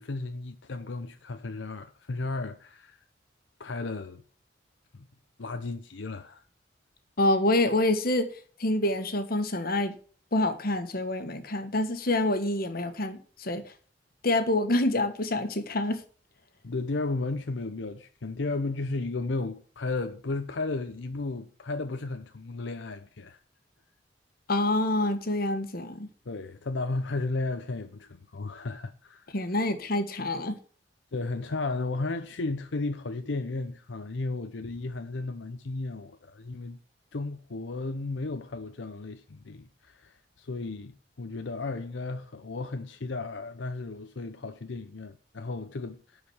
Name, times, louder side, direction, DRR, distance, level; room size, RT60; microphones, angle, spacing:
voice 1, 0.0-3.0 3.6-4.2 4.9-5.1 5.4-6.4 16.6-23.4 26.3-29.3 31.1-36.8 37.1-46.2, left 3 dB, 85° left, 0.7 m, -34 dB
voice 2, 7.2-8.3 8.6-9.9 10.3-13.6 14.2-16.0 24.5-26.1 29.3-30.6, left 1 dB, 55° left, 1.5 m, -26 dB
11.0 x 5.1 x 7.1 m
head